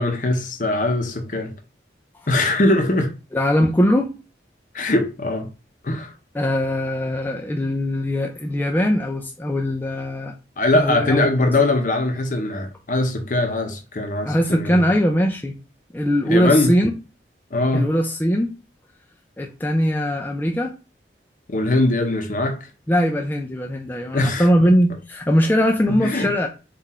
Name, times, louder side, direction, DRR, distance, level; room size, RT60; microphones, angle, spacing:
voice 1, 0.0-1.5 2.3-3.1 4.7-5.5 5.8-6.1 10.6-14.8 16.3-16.7 17.5-17.9 21.5-22.7 24.1-24.5 25.9-26.3, left 2 dB, 45° left, 0.7 m, -21 dB
voice 2, 3.3-4.1 6.3-10.3 10.8-11.7 14.2-15.5 15.9-16.9 17.7-18.5 19.4-20.7 22.9-26.5, equal, 10° left, 0.4 m, -21 dB
3.8 x 2.5 x 4.1 m
head